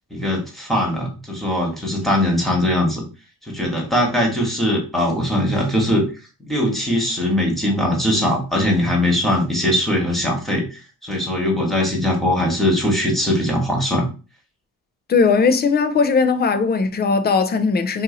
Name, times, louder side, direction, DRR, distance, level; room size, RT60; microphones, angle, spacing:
voice 1, 0.1-3.1 3.5-6.1 6.4-14.1, left 1 dB, ahead, 1.3 m, -20 dB
voice 2, 15.1-18.0, left 4 dB, 25° left, 0.4 m, -18 dB
2.7 x 2.6 x 3.8 m
cardioid pair, 90°, 37 cm